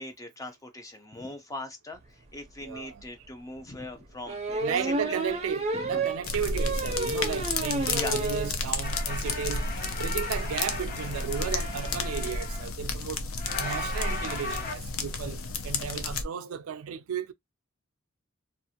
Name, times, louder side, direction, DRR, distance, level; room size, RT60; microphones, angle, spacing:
voice 1, 0.0-5.2 5.7-6.1 7.8-8.2 15.8-15.9, left 1 dB, 15° left, 0.6 m, -41 dB
sound 1, 2.5-2.6 3.0-3.1 4.3-8.6 8.9-9.0 9.3-9.4 9.6-9.8, right 2 dB, 30° right, 0.5 m, -31 dB
voice 2, 2.6-3.0 4.6-13.2 13.6-17.3, right 7 dB, 85° right, 0.4 m, -34 dB
sound 2, 6.2-16.2, left 3 dB, 80° left, 0.6 m, -32 dB
sound 3, 8.8-12.7 13.4-14.7, left 3 dB, 40° left, 1.1 m, -37 dB
2.5 x 2.4 x 2.8 m
head